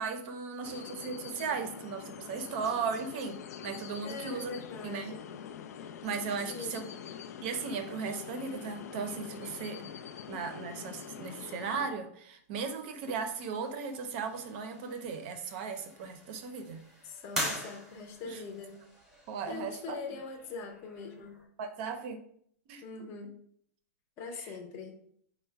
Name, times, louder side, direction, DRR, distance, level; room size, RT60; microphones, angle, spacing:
voice 1, 0.0-4.6 4.8-5.1 6.0-6.9 7.4-9.9 10.3-16.8 18.2-18.4 19.3-20.0 21.6-22.2 22.7-23.1 24.3-24.5, right 5 dB, 40° right, 7 dB, 0.5 m, -37 dB
sound 1, 0.6-11.9, left 8 dB, 90° left, 0.4 m, -45 dB
voice 2, 4.0-5.3 6.5-6.9 17.0-18.8 19.5-21.4 22.8-23.3 24.2-25.0, left 4 dB, 30° left, 2 dB, 0.7 m, -42 dB
sound 2, 13.0-21.5, equal, 5° right, 0.9 m, -43 dB
4.3 x 2.1 x 4.5 m, 0.64 s
supercardioid pair, 165°, 8 cm